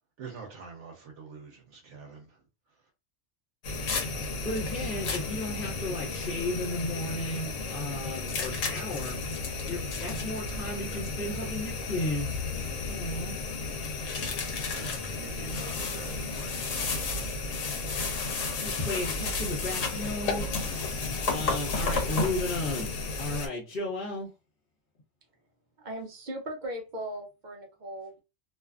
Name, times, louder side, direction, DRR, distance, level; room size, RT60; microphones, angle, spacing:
voice 1, 0.2-2.9 14.7-17.4, right 5 dB, 75° right, 0.9 m, -47 dB
sound 1, 3.6-23.5, left 3 dB, 85° left, 1.1 m, -32 dB
voice 2, 4.1-9.2 9.6-12.4 12.9-13.4 18.6-22.9 23.2-24.3, left 1 dB, 45° left, 1.0 m, -34 dB
voice 3, 25.8-28.2, right 1 dB, 50° right, 0.6 m, -38 dB
2.6 x 2.4 x 2.3 m
omnidirectional pair, 1.3 m